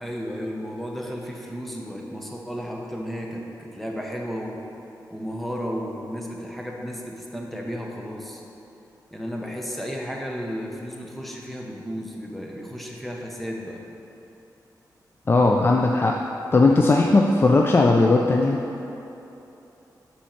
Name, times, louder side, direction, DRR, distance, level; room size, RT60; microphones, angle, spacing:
voice 1, 0.0-4.6 5.1-8.4 9.1-13.8, equal, ahead, -1 dB, 0.7 m, -33 dB
voice 2, 15.3-16.1 16.5-18.6, left 3 dB, 30° left, 1 dB, 0.3 m, -18 dB
7.1 x 4.3 x 4.5 m, 3.0 s
wide cardioid pair, 130°, 7 cm